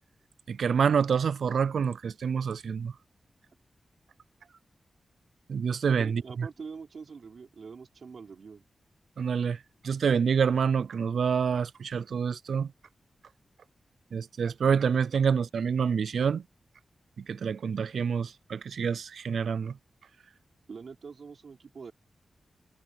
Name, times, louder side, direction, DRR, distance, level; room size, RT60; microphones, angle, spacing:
voice 1, 0.5-2.9 5.5-6.5 9.2-9.6 9.8-12.7 14.1-16.4 17.3-19.8, right 6 dB, 85° right, 0.4 m, -27 dB
voice 2, 6.0-8.6 20.7-21.9, right 5 dB, 65° right, 3.8 m, -44 dB
wide cardioid pair, 100°, 0 cm